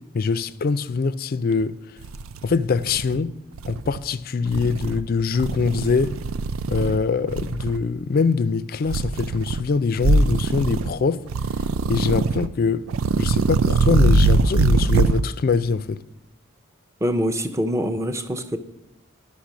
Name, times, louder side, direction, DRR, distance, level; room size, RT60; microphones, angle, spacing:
voice 1, 0.1-1.7 2.4-3.3 3.7-6.2 6.7-11.2 11.9-12.9 13.2-16.0, left 4 dB, 45° left, 0.4 m, -23 dB
sound 1, 1.6-1.7 2.0-3.2 3.5-4.0 4.5-5.0 5.4-7.0 7.3-7.8 8.9-9.6 10.0-10.9 11.3-12.5 12.9-15.2, right 3 dB, 85° right, 0.4 m, -22 dB
voice 2, 17.0-18.6, equal, 15° right, 0.6 m, -24 dB
11.5 x 5.9 x 6.1 m
head